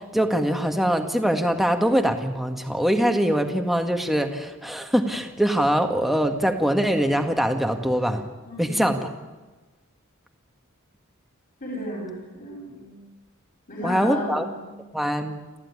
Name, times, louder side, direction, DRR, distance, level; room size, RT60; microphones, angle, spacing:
voice 1, 0.0-8.2 8.6-9.1 13.8-14.4 14.9-15.3, equal, ahead, 5 dB, 1.8 m, -23 dB
voice 2, 8.4-8.9 11.6-13.0 13.7-14.7, left 1 dB, 40° left, -5 dB, 7.5 m, -33 dB
28.5 x 14.5 x 9.8 m, 1.2 s
head